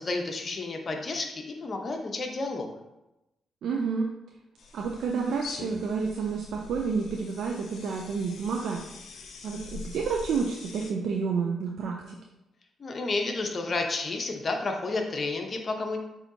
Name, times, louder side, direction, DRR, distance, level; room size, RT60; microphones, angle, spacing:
voice 1, 0.0-2.7 12.8-16.0, left 3 dB, 45° left, 3 dB, 0.8 m, -31 dB
voice 2, 3.6-4.1 4.7-8.8 9.4-12.2, right 5 dB, 75° right, 0 dB, 0.4 m, -30 dB
sound 1, 4.6-10.9, left 4 dB, 70° left, 0.5 m, -44 dB
7.0 x 2.8 x 2.7 m, 0.93 s
supercardioid pair, 55°, 0 cm